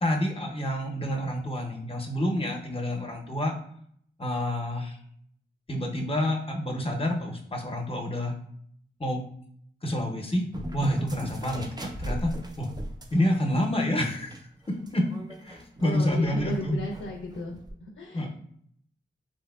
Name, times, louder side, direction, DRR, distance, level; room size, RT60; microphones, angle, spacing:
voice 1, 0.0-3.5 4.2-5.0 5.7-8.4 9.0-9.2 9.8-10.4 10.7-12.3 12.6-12.7 13.1-15.0 15.4-16.8 18.1-18.3, left 1 dB, 30° left, 2 dB, 0.7 m, -28 dB
sound 1, 10.5-13.2 13.6-13.7 14.1-17.7, right 1 dB, 20° right, 0.5 m, -38 dB
voice 2, 15.8-18.3, left 1 dB, 70° left, -1 dB, 0.5 m, -35 dB
3.4 x 2.7 x 2.3 m, 0.65 s
cardioid pair, 50°, 20 cm